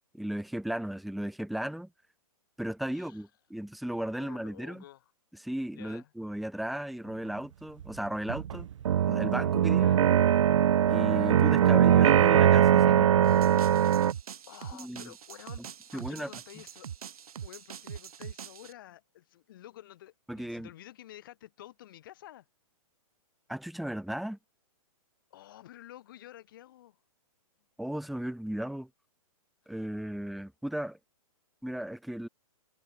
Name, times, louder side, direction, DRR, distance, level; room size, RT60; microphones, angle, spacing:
voice 1, 0.1-1.9 2.6-4.8 5.4-8.7 9.1-9.9 10.9-13.6 14.7-15.1 15.9-16.3 20.3-20.7 23.5-24.4 27.8-28.9 29.7-31.0 31.6-32.3, right 1 dB, ahead, 0.4 m, -35 dB
voice 2, 2.9-3.2 4.2-5.0 5.7-6.1 9.7-10.0 14.5-16.9 17.4-22.5 25.3-27.0 29.7-29.8, left 13 dB, 35° left, 3.2 m, -50 dB
sound 1, 7.8-7.9 8.3-14.1, right 10 dB, 55° right, 0.5 m, -21 dB
sound 2, 13.2-18.7, right 8 dB, 70° right, 1.1 m, -44 dB
hypercardioid pair, 175°, 19 cm